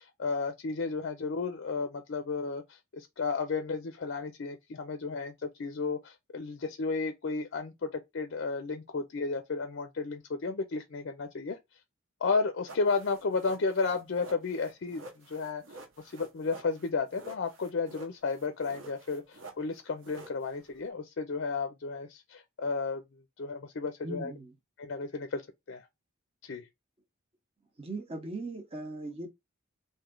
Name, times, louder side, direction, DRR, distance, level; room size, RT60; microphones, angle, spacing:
voice 1, 0.0-11.6 12.2-15.6 16.1-23.0 23.4-24.3 24.8-25.4 25.7-25.9 26.4-26.7, left 4 dB, 55° left, 0.5 m, -33 dB
sound 1, 12.7-20.9, right 2 dB, 60° right, 0.9 m, -49 dB
voice 2, 24.0-24.5 27.8-29.3, right 2 dB, 30° right, 0.8 m, -39 dB
3.1 x 2.7 x 3.7 m
head